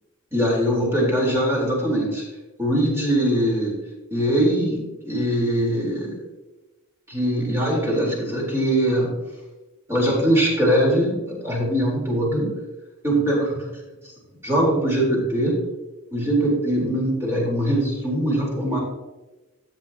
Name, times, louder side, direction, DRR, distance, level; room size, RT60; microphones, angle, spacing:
voice 1, 0.3-2.2 2.6-3.8 4.1-6.2 7.1-9.2 9.9-12.5 13.0-13.7 14.4-15.6 16.1-18.8, right 1 dB, 15° right, -4 dB, 4.0 m, -22 dB
13.5 x 9.1 x 2.9 m, 1.1 s
head